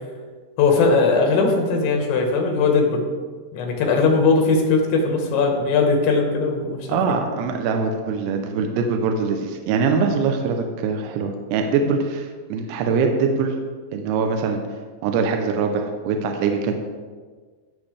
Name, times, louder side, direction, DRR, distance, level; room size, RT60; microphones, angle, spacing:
voice 1, 0.6-3.1 3.5-7.0, left 4 dB, 80° left, 2 dB, 3.7 m, -19 dB
voice 2, 6.9-13.5 13.9-14.6 15.0-16.7, right 5 dB, 80° right, 4 dB, 2.7 m, -23 dB
15.5 x 6.2 x 3.4 m, 1.5 s
omnidirectional pair, 5.2 m